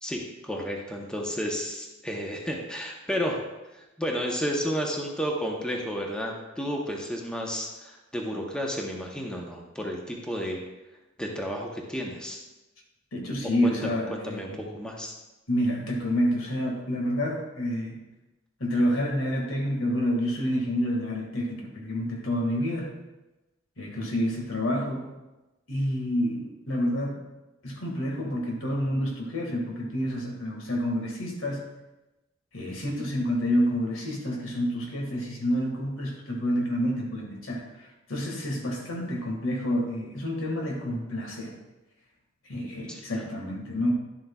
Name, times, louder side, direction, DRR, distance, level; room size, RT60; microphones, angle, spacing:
voice 1, 0.0-3.4 3.7-10.6 11.2-12.4 13.6-15.1 42.9-43.3, equal, 5° left, 0 dB, 0.8 m, -32 dB
voice 2, 13.1-14.7 15.5-18.0 18.6-22.9 23.8-25.1 25.7-27.2 27.6-31.6 32.5-37.6 38.1-41.5 42.5-43.9, equal, 80° left, 0 dB, 1.8 m, -28 dB
11.0 x 7.6 x 2.3 m, 1.0 s
head